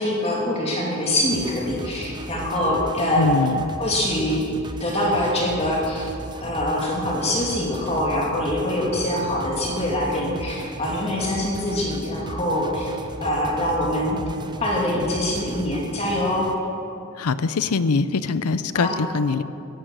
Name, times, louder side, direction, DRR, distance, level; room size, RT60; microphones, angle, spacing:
voice 1, 0.0-3.4 3.8-4.5 4.8-6.1 6.4-12.9 13.2-14.2 14.6-16.5 18.7-19.0, left 1 dB, 30° left, -2 dB, 2.6 m, -24 dB
sound 1, 1.3-16.5, right 1 dB, 20° right, 0.7 m, -37 dB
voice 2, 3.2-3.6 17.2-19.4, left 4 dB, 85° left, 14 dB, 0.6 m, -22 dB
15.0 x 11.0 x 7.7 m, 2.8 s
head